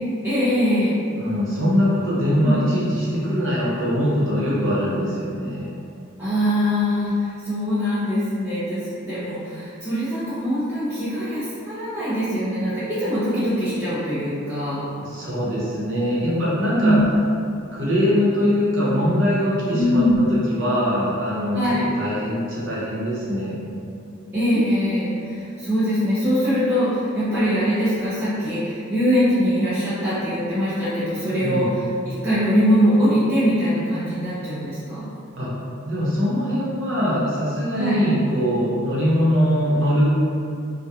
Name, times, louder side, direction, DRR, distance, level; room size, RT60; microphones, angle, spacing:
voice 1, 0.2-1.0 2.4-2.6 6.2-14.9 16.8-17.0 19.7-20.2 21.5-21.8 24.3-35.1 37.7-38.0, equal, 10° right, -16 dB, 0.6 m, -22 dB
voice 2, 1.2-5.7 15.0-17.0 17.7-23.6 31.4-31.7 35.4-35.5 35.8-40.1, equal, 65° right, -8 dB, 0.8 m, -22 dB
2.8 x 2.2 x 2.3 m, 2.4 s
head